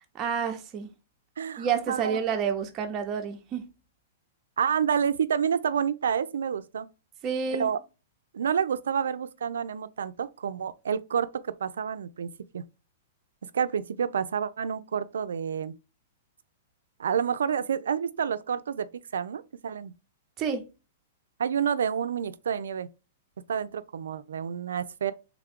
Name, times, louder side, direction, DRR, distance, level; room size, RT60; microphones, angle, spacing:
voice 1, 0.1-0.9 1.6-3.7 7.2-7.7 20.4-20.7, right 7 dB, 25° right, 0.7 m, -29 dB
voice 2, 1.4-2.2 4.6-6.9 7.5-7.8 8.3-11.3 11.6-12.3 12.5-12.6 13.5-15.7 17.0-18.9 19.1-19.9 21.4-22.9 23.5-25.1, right 7 dB, 90° right, 0.4 m, -29 dB
3.4 x 2.3 x 3.5 m
hypercardioid pair, 145°, 0 cm